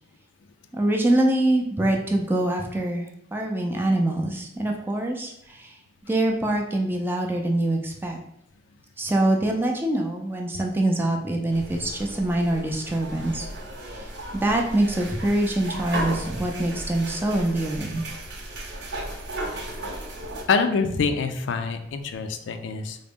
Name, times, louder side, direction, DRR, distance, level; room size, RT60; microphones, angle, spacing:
voice 1, 0.7-5.8 6.1-8.2 9.0-13.5 13.9-18.0 20.9-21.0, right 1 dB, 10° right, 1 dB, 0.4 m, -24 dB
sound 1, 11.5-20.4, right 1 dB, 75° right, 0.8 m, -35 dB
voice 2, 20.5-23.0, left 5 dB, 85° left, 8 dB, 0.4 m, -25 dB
3.8 x 2.0 x 3.5 m, 0.76 s
head